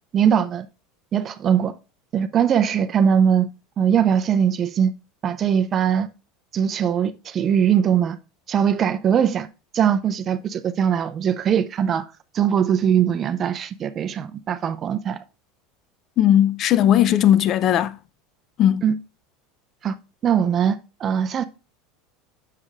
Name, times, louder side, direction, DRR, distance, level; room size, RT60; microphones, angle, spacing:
voice 1, 0.1-0.7 1.1-1.7 2.1-3.5 3.8-4.9 5.2-6.1 6.5-8.2 8.5-9.5 9.7-12.1 12.3-15.2 18.8-18.9 19.8-19.9 20.2-21.4, right 8 dB, 30° right, 0.4 m, -21 dB
voice 2, 16.2-18.0 18.6-18.8, left 11 dB, 40° left, 0.4 m, -17 dB
8.2 x 6.5 x 2.4 m
supercardioid pair, 145°, 0 cm